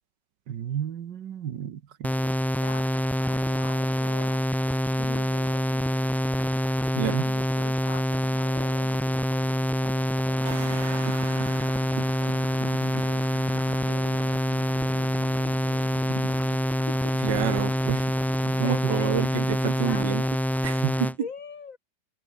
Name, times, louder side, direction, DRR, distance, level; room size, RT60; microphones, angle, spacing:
voice 1, 0.5-2.1 6.9-7.3 17.2-18.2 18.5-20.3 20.6-21.3, right 9 dB, 75° right, 1.8 m, -29 dB
sound 1, 2.0-21.1, equal, ahead, 0.4 m, -26 dB
voice 2, 2.6-4.5 4.9-6.0 7.2-13.2 13.7-14.4 16.9-17.2 18.6-19.3 19.9-20.3 21.2-21.8, left 6 dB, 50° left, 1.5 m, -43 dB
sound 2, 10.4-20.2, right 5 dB, 40° right, 1.9 m, -42 dB
omnidirectional pair, 1.9 m